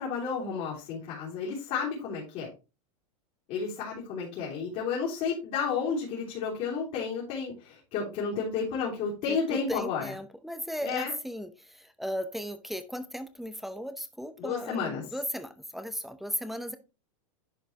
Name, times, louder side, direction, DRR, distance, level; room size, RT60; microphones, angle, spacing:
voice 1, 0.0-2.5 3.5-10.0 10.8-11.1 14.4-15.0, left 5 dB, 50° left, -5 dB, 3.3 m, -32 dB
voice 2, 9.3-16.8, equal, ahead, 11 dB, 0.7 m, -36 dB
10.5 x 5.0 x 2.9 m, 0.29 s
supercardioid pair, 135°, 17 cm